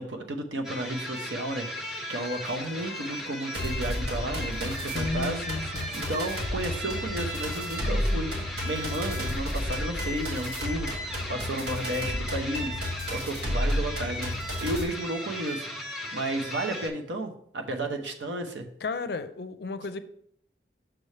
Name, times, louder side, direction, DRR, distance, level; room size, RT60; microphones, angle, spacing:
voice 1, 0.0-1.7 2.1-5.4 5.9-8.3 8.6-12.7 13.1-15.7 16.1-18.7, right 1 dB, 85° right, 0.8 m, -32 dB
sound 1, 0.6-16.9, equal, ahead, 0.6 m, -37 dB
sound 2, 2.1-11.8, right 1 dB, 50° right, 1.0 m, -52 dB
sound 3, 3.5-14.8, left 1 dB, 70° right, 1.3 m, -32 dB
voice 2, 4.8-6.1 18.8-20.0, left 3 dB, 60° left, 0.4 m, -34 dB
6.1 x 3.3 x 5.4 m
head